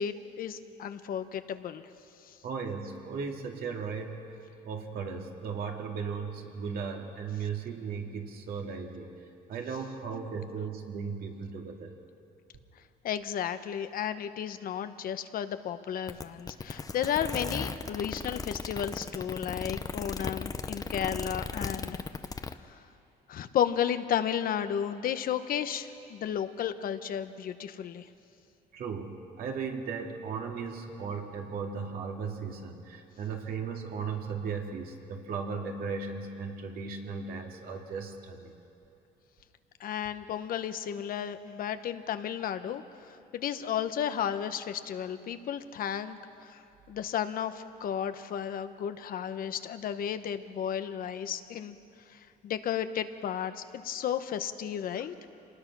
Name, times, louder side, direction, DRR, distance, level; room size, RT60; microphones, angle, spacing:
voice 1, 0.0-1.8 2.3-2.4 13.0-22.0 22.7-22.8 23.3-28.1 39.8-46.6 46.9-51.8 52.1-55.3, left 9 dB, 60° left, 10 dB, 1.0 m, -33 dB
voice 2, 2.4-4.2 4.6-9.1 9.5-11.9 28.7-38.5, right 5 dB, 60° right, 2 dB, 2.4 m, -36 dB
sound 1, 16.1-22.5, left 4 dB, 20° left, 0.8 m, -36 dB
26.0 x 19.5 x 6.1 m, 2.7 s
cardioid pair, 110°, 17 cm